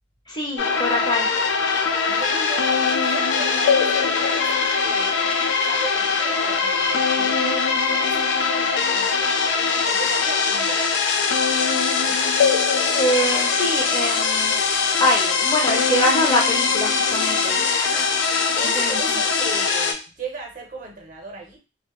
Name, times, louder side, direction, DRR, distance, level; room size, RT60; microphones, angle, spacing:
voice 1, 0.3-1.3 13.0-14.6 15.0-17.6 18.6-19.2, left 1 dB, 25° left, -1 dB, 0.5 m, -24 dB
sound 1, 0.6-19.9, left 5 dB, 80° left, 0.4 m, -21 dB
voice 2, 1.7-5.3 5.6-9.4 9.8-10.9 12.0-12.3 17.2-18.2 18.5-21.6, right 3 dB, 45° right, 1 dB, 0.6 m, -37 dB
2.1 x 2.1 x 2.9 m, 0.31 s
head